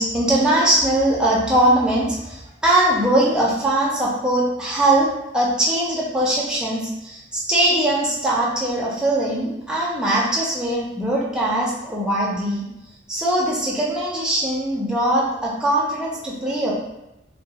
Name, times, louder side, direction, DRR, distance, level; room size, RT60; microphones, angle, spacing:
voice 1, 0.0-12.6 13.1-16.7, right 1 dB, 5° right, -5 dB, 0.5 m, -21 dB
2.3 x 2.2 x 2.8 m, 0.90 s
head